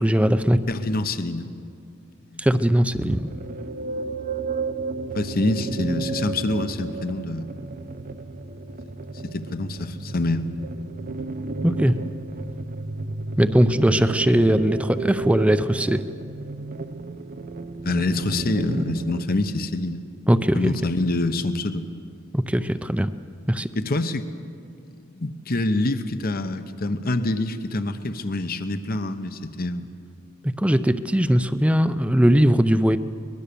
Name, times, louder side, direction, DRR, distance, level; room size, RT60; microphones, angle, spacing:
voice 1, 0.0-0.6 2.4-3.3 11.6-11.9 13.4-16.0 20.3-20.8 22.3-23.1 23.5-23.7 30.4-33.0, equal, 5° right, 11 dB, 0.5 m, -20 dB
voice 2, 0.7-1.5 2.2-2.5 5.1-7.5 9.2-10.5 17.8-20.0 20.5-21.9 23.7-24.3 25.0-29.9, left 2 dB, 50° left, 10 dB, 1.0 m, -26 dB
sound 1, 3.2-19.2, right 3 dB, 45° right, 0.7 m, -32 dB
24.0 x 20.5 x 6.9 m, 2.3 s
head